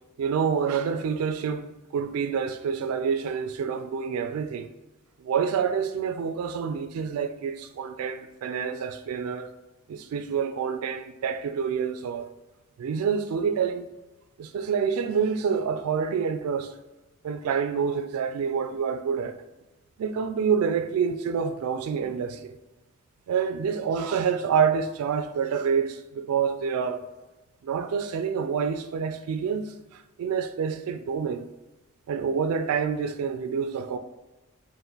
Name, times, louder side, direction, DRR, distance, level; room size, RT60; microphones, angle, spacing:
voice 1, 0.2-4.7 5.2-9.5 9.9-12.3 12.8-13.9 14.4-16.8 17.2-19.4 20.0-22.5 23.3-27.0 27.6-31.5 32.1-34.0, right 6 dB, 85° right, 0.3 m, -27 dB
3.8 x 2.5 x 3.8 m
head